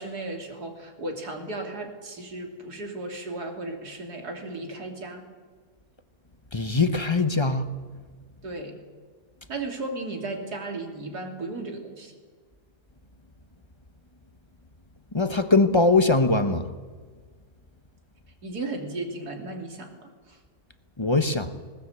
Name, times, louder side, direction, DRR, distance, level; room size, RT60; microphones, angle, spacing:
voice 1, 0.0-5.2 8.4-8.8 9.5-12.1 18.4-20.4, right 2 dB, 65° right, 3 dB, 3.5 m, -35 dB
voice 2, 6.5-7.7 15.1-16.7 21.0-21.5, left 3 dB, 20° left, 10 dB, 0.8 m, -21 dB
20.0 x 18.5 x 8.2 m, 1.5 s
omnidirectional pair, 1.8 m